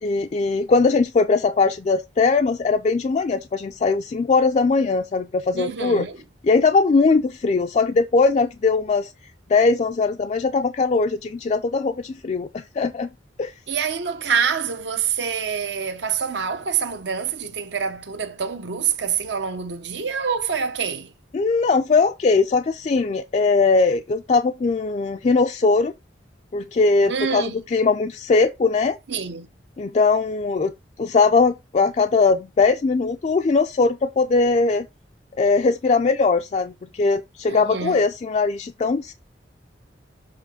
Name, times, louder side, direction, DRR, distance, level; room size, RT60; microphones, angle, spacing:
voice 1, 0.0-6.1 6.4-9.1 9.5-13.1 13.4-13.5 21.3-25.9 26.5-29.0 29.8-30.7 31.0-34.9 35.4-39.1, left 4 dB, 40° left, 0.3 m, -20 dB
voice 2, 5.5-6.2 13.7-21.1 27.0-27.6 29.1-29.5 37.5-38.0, right 6 dB, 80° right, 1.0 m, -26 dB
7.5 x 3.0 x 4.9 m
head